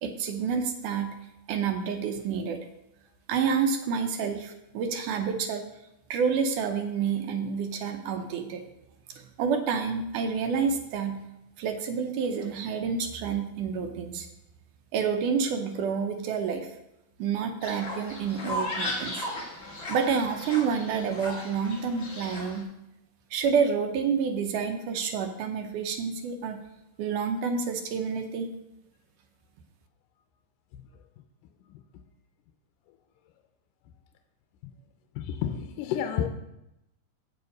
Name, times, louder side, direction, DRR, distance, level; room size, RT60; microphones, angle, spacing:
voice 1, 0.0-1.1 1.5-2.6 3.3-5.7 6.1-8.6 9.2-11.2 11.6-14.3 14.9-16.7 17.2-19.3 19.9-22.7 23.3-26.6 27.0-28.5, right 6 dB, 80° right, 6 dB, 2.2 m, -28 dB
Fowl, 17.6-22.6, left 1 dB, 45° left, 0.8 m, -36 dB
voice 2, 35.2-36.3, left 9 dB, 85° left, 7 dB, 2.2 m, -30 dB
7.9 x 7.0 x 5.2 m, 0.87 s
omnidirectional pair, 3.8 m